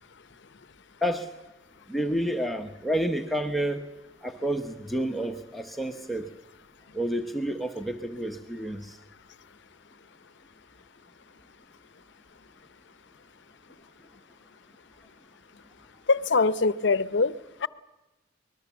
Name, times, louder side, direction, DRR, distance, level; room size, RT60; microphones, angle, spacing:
voice 1, 1.9-3.9 4.2-6.3 6.9-9.0, right 1 dB, ahead, 0.9 m, -29 dB
voice 2, 16.1-17.3 17.6-17.7, left 4 dB, 65° left, 0.7 m, -23 dB
24.5 x 20.5 x 7.2 m
head